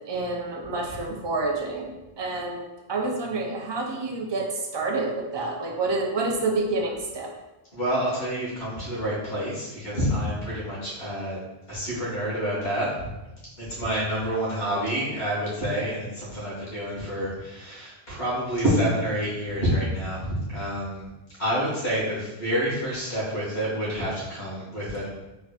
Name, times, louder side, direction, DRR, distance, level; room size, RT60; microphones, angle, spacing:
voice 1, 0.0-7.3, right 3 dB, 40° right, 0 dB, 0.4 m, -28 dB
voice 2, 7.7-11.4 11.7-13.1 13.6-21.1 21.4-25.1, equal, 70° left, -8 dB, 1.9 m, -28 dB
3.7 x 3.4 x 2.4 m, 1.0 s
omnidirectional pair, 1.1 m